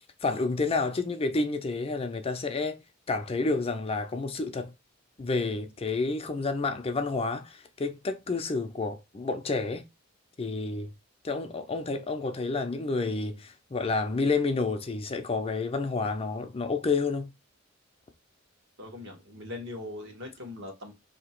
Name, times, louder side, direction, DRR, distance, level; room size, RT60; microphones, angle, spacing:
voice 1, 0.2-2.8 3.1-4.7 5.2-9.8 10.4-10.9 11.2-17.3, left 3 dB, 30° left, 0.5 m, -29 dB
voice 2, 18.8-20.9, left 2 dB, 65° right, 1.3 m, -40 dB
2.9 x 2.8 x 4.4 m
head